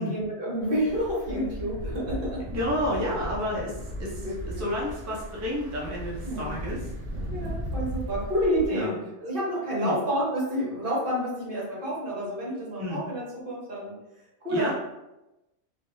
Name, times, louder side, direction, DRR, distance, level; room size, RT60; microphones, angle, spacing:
voice 1, 0.0-2.5 4.2-4.7 6.2-6.5 7.3-8.9 9.2-14.0 14.4-14.7, equal, 50° right, -6 dB, 1.3 m, -29 dB
sound 1, 0.6-8.7, equal, 85° right, 1.0 m, -36 dB
voice 2, 2.5-3.7 4.0-6.8 8.7-8.9 9.8-9.9 12.8-13.0 14.5-14.7, left 1 dB, 20° right, -5 dB, 0.5 m, -30 dB
3.2 x 2.5 x 2.7 m, 0.96 s
omnidirectional pair, 1.2 m